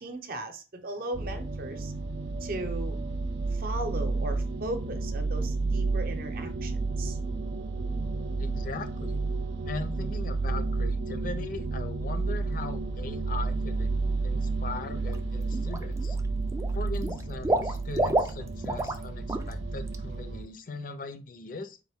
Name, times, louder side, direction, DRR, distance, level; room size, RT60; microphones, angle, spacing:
voice 1, 0.0-1.9 2.4-3.0 3.6-6.7 7.0-7.2, right 2 dB, 55° right, 0.7 m, -37 dB
sound 1, 1.1-20.4, right 3 dB, 90° right, 0.6 m, -31 dB
voice 2, 8.4-9.2 9.7-13.9 14.2-16.2 16.7-21.8, left 3 dB, 50° left, 0.5 m, -40 dB
Water / Liquid, 14.9-15.2 15.5-16.2 16.5-19.0 19.3-19.5 19.9-20.0, right 1 dB, 15° right, 0.3 m, -29 dB
4.0 x 2.6 x 3.5 m
head